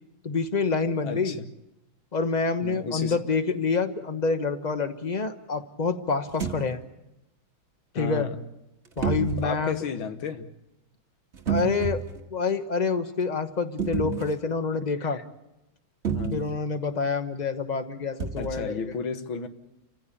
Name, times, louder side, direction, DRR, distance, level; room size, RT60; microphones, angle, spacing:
voice 1, 0.2-1.4 2.1-6.8 7.9-8.3 9.0-9.8 11.5-12.0 12.3-15.2 16.3-18.8, left 4 dB, 25° left, 9 dB, 1.0 m, -27 dB
voice 2, 1.0-1.5 2.6-3.2 7.9-8.4 9.4-10.5 14.0-14.3 15.1-15.2 16.1-16.6 18.4-19.5, left 5 dB, 75° left, 9 dB, 2.0 m, -33 dB
sound 1, 6.3-6.7 9.0-9.5 11.3-12.2 13.8-14.4 16.0-16.5 18.2-18.6, right 7 dB, 35° right, 1.8 m, -29 dB
28.0 x 15.5 x 8.5 m, 0.93 s
omnidirectional pair, 2.2 m